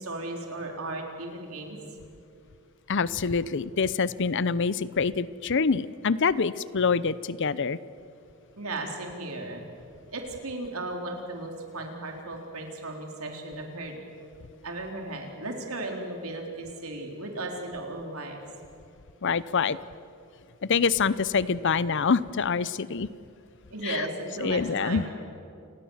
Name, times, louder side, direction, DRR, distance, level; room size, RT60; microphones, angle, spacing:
voice 1, 0.0-1.8 8.6-9.7 10.1-14.0 14.6-18.4 23.7-25.1, right 2 dB, 85° right, 2 dB, 3.9 m, -35 dB
voice 2, 2.9-7.8 19.2-19.8 20.7-23.1 23.8-24.1 24.4-25.0, left 5 dB, 60° left, 17 dB, 0.7 m, -25 dB
29.0 x 19.5 x 7.2 m, 2.5 s
head